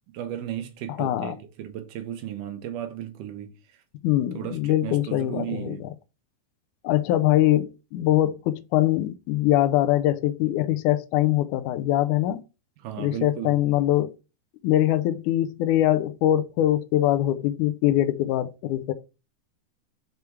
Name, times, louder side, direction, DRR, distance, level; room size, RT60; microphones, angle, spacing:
voice 1, 0.1-3.5 4.3-5.8 12.8-13.6, right 11 dB, 90° right, 2.5 m, -35 dB
voice 2, 1.0-1.3 4.0-5.9 6.8-12.4 13.0-14.1 14.6-18.9, left 13 dB, 85° left, 2.1 m, -23 dB
6.6 x 3.5 x 4.6 m
omnidirectional pair, 3.5 m